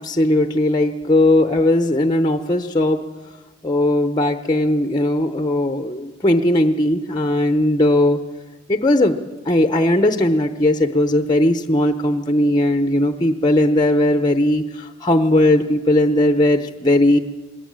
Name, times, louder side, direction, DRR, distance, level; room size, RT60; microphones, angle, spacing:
voice 1, 0.0-3.0 3.6-8.2 8.7-9.2 9.5-17.2, left 1 dB, 20° left, 8 dB, 0.8 m, -18 dB
21.0 x 18.0 x 8.8 m, 1.2 s
head